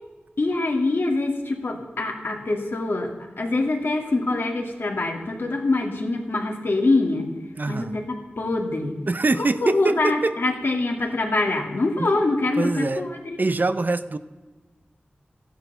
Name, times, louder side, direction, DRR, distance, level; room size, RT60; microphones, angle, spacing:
voice 1, 0.4-7.3 7.7-8.9 9.6-13.4, left 2 dB, 65° left, 2 dB, 2.4 m, -24 dB
voice 2, 7.6-8.0 9.1-10.3 12.0-12.1 12.6-13.0 13.4-14.2, right 3 dB, 50° right, 12 dB, 0.7 m, -24 dB
14.0 x 11.0 x 6.8 m, 1.2 s
wide cardioid pair, 65°, 4 cm